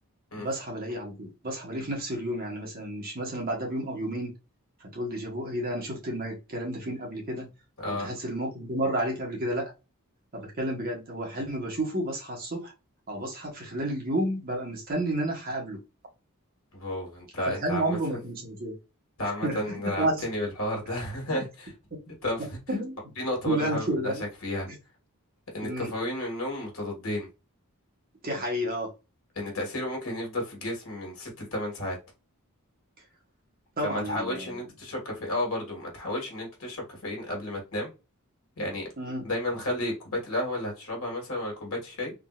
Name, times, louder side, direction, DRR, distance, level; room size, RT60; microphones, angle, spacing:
voice 1, 0.4-4.3 4.9-7.4 7.9-9.7 10.3-12.7 13.1-15.8 17.5-18.8 19.4-20.2 21.3-21.4 22.7-23.0 23.4-24.2 24.7-24.8 25.6-25.9 28.2-28.9 33.8-34.6 39.0-39.2, right 1 dB, 40° right, 1.2 m, -31 dB
voice 2, 7.8-8.1 16.7-18.0 19.2-21.7 22.1-22.6 23.2-24.1 24.4-24.7 25.5-27.3 29.3-32.0 33.8-37.9 38.6-38.9 39.2-42.1, left 1 dB, 65° left, 1.6 m, -32 dB
3.7 x 2.6 x 2.3 m
head